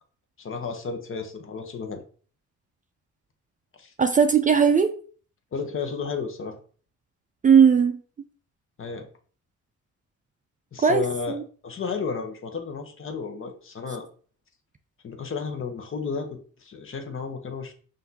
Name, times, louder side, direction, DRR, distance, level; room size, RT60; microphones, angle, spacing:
voice 1, 0.4-2.0 3.8-3.9 5.5-6.6 8.8-9.1 10.7-11.4 11.6-14.1 15.0-17.7, left 5 dB, 45° left, 5 dB, 0.9 m, -32 dB
voice 2, 4.0-4.9 7.4-8.0 10.8-11.4, right 6 dB, 25° right, 7 dB, 0.4 m, -18 dB
5.8 x 2.6 x 2.7 m, 0.43 s
cardioid pair, 90°, 30 cm